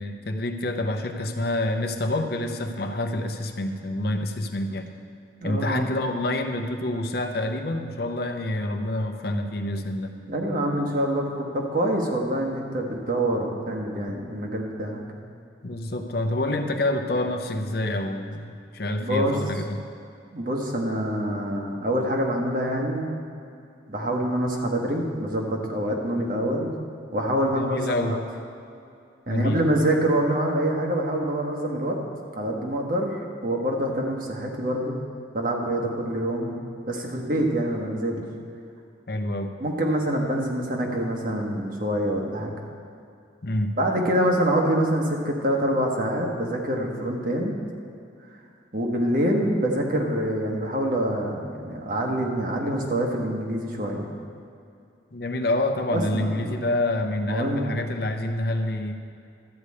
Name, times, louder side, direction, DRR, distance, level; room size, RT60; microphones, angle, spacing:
voice 1, 0.0-4.9 5.4-10.2 15.6-19.8 27.4-28.2 29.3-29.6 39.1-39.5 43.4-43.8 55.1-58.9, left 1 dB, 55° left, 5 dB, 0.7 m, -27 dB
voice 2, 5.4-5.9 10.3-15.0 19.0-19.4 20.3-23.1 23.9-26.7 27.1-28.2 29.3-32.0 32.3-35.0 35.3-36.5 36.9-38.2 39.6-42.5 43.8-47.5 48.7-54.0 55.9-56.6 57.2-57.8, right 1 dB, 45° right, 0 dB, 1.4 m, -26 dB
12.0 x 5.0 x 8.4 m, 2.6 s
head